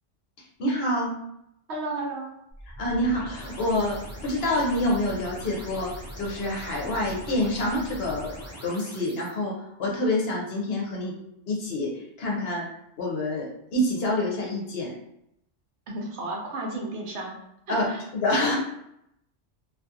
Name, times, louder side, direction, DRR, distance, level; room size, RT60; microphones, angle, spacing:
voice 1, 0.6-1.1 2.8-8.3 8.6-9.5 9.8-11.1 11.5-11.9 12.2-12.6 13.0-13.5 13.7-14.9 17.7-17.8 18.1-18.6, left 1 dB, 65° left, -2 dB, 0.8 m, -26 dB
voice 2, 1.7-2.3 15.9-17.3 17.7-18.0, right 2 dB, 70° right, 0 dB, 0.9 m, -33 dB
sound 1, 2.5-9.3, right 1 dB, 15° right, 0.5 m, -41 dB
2.4 x 2.3 x 2.7 m, 0.79 s
omnidirectional pair, 1.2 m